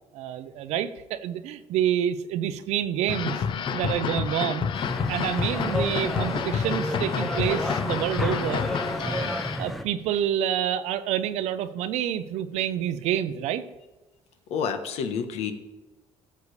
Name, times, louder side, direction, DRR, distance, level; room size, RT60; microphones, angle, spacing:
voice 1, 0.1-3.4 3.7-4.7 5.1-8.6 9.0-9.3 9.6-13.6, right 10 dB, 85° right, 12 dB, 0.6 m, -28 dB
sound 1, 3.1-9.6, left 7 dB, 50° left, 0.6 m, -29 dB
sound 2, 4.7-9.8, left 1 dB, ahead, 0.6 m, -32 dB
voice 2, 14.5-15.5, left 6 dB, 75° left, 8 dB, 1.1 m, -29 dB
14.5 x 6.8 x 3.3 m, 1.2 s
cardioid pair, 140°, 11 cm